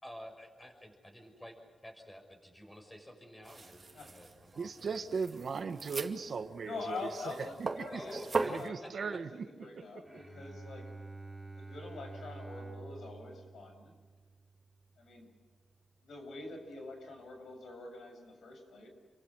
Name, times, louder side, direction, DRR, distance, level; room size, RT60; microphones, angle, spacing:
voice 1, 0.0-4.7 7.9-9.2, equal, 15° left, 4 dB, 6.1 m, -51 dB
sound 1, 3.4-8.7, right 3 dB, 35° right, 2.2 m, -40 dB
voice 2, 4.5-10.2, right 5 dB, 55° right, 8 dB, 1.6 m, -39 dB
voice 3, 6.6-8.2 8.6-8.7 9.0-10.9 11.6-13.9 15.0-15.3 16.0-18.9, left 3 dB, 80° left, 4 dB, 7.4 m, -45 dB
Bowed string instrument, 10.0-15.3, right 3 dB, 5° right, 3.3 m, -49 dB
29.5 x 25.0 x 6.4 m, 1.4 s
wide cardioid pair, 145°, 0 cm